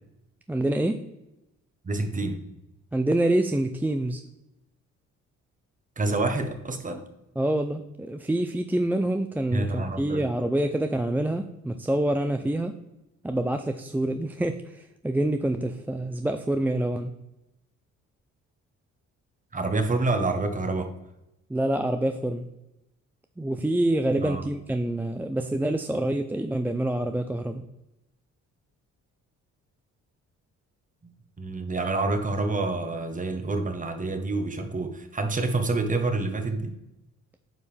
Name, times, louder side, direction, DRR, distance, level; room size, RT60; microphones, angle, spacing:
voice 1, 0.5-1.0 2.9-4.2 7.4-12.8 13.2-17.2 21.5-22.5 23.4-27.6, right 1 dB, 5° right, 6 dB, 0.4 m, -26 dB
voice 2, 1.8-2.4 6.0-7.0 9.5-10.2 19.5-20.9 24.2-24.4 31.0-36.7, right 2 dB, 25° right, 7 dB, 1.2 m, -28 dB
9.1 x 5.3 x 3.3 m, 0.92 s
cardioid pair, 90°, 30 cm